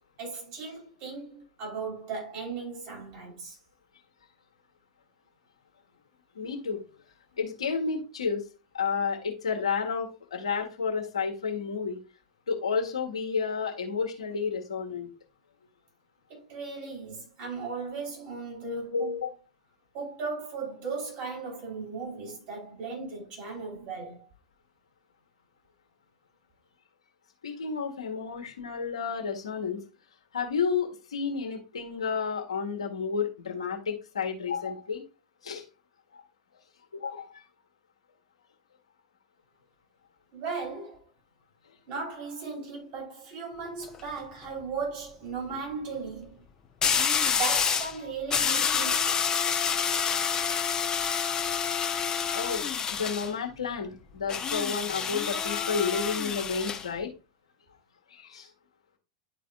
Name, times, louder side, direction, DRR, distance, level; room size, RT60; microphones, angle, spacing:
voice 1, 0.2-3.6 16.3-19.2 19.9-24.3 40.3-41.1 41.9-46.4 47.3-49.3, right 4 dB, 50° right, 4.3 m, -37 dB
voice 2, 6.3-6.8 7.4-8.4 8.7-12.0 12.5-15.1 18.9-19.3 27.4-29.8 30.3-35.0 35.4-35.6 36.1-36.2 36.9-37.4 52.3-57.1 58.1-58.5, left 5 dB, 75° left, 1.6 m, -31 dB
sound 1, 43.7-44.0 46.8-47.9 48.3-53.3 54.3-56.8, left 7 dB, 20° left, 0.9 m, -28 dB
11.5 x 4.2 x 2.5 m
figure-of-eight pair, 95°, 3 cm